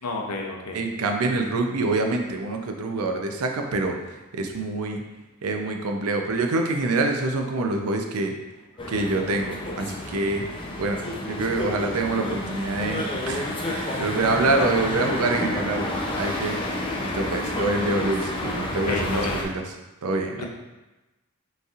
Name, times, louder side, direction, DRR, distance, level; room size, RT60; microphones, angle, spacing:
voice 1, 0.0-0.8 18.9-19.5 20.4-20.5, left 3 dB, 85° left, 2 dB, 0.6 m, -30 dB
voice 2, 0.7-4.0 4.3-5.0 5.4-8.3 8.9-10.4 10.8-15.9 16.1-16.6 17.0-19.5 20.0-20.5, right 2 dB, 75° right, 3 dB, 0.5 m, -26 dB
sound 1, 8.8-19.4, left 1 dB, 25° left, 0.5 m, -30 dB
5.1 x 3.2 x 2.4 m, 1.1 s
head